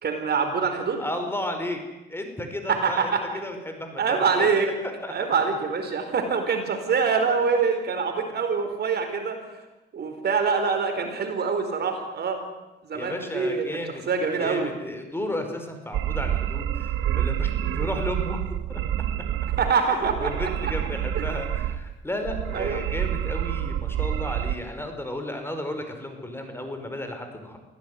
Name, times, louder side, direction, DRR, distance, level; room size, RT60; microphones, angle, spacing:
voice 1, 0.0-1.0 2.7-3.2 4.0-4.7 5.1-9.4 9.9-12.4 12.9-13.7 14.1-14.7 19.6-20.5 21.1-21.3 22.5-22.8, right 5 dB, 55° right, 5 dB, 4.8 m, -25 dB
voice 2, 1.0-1.8 2.1-4.5 4.8-5.3 12.9-14.0 14.4-18.8 20.0-27.6, left 1 dB, 10° left, 6 dB, 5.1 m, -33 dB
sound 1, 15.9-19.7 20.0-21.9 22.2-24.6, right 11 dB, 90° right, 1.1 m, -28 dB
24.5 x 16.5 x 9.7 m, 1.0 s
cardioid pair, 90°, 20 cm